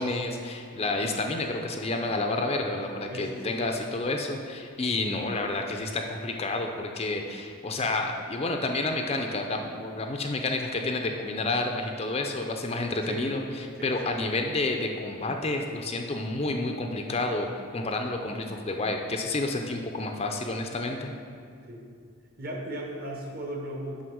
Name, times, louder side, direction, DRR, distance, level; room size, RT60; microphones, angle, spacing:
voice 1, 0.0-21.1, left 2 dB, 25° left, 3 dB, 0.5 m, -30 dB
voice 2, 3.1-3.6 13.0-13.3 13.8-14.1 21.7-21.8 22.4-24.0, right 1 dB, 40° right, 1 dB, 1.1 m, -36 dB
7.9 x 5.5 x 6.2 m, 2.3 s
head